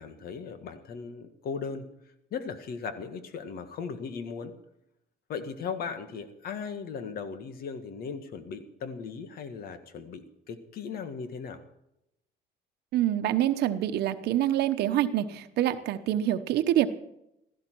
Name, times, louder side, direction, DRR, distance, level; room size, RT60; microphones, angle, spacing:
voice 1, 0.0-1.9 2.3-4.6 5.3-11.6, left 5 dB, 65° left, 9 dB, 1.8 m, -37 dB
voice 2, 12.9-16.9, right 12 dB, 75° right, 9 dB, 1.0 m, -26 dB
16.0 x 14.5 x 4.6 m, 0.83 s
cardioid pair, 110°, 17 cm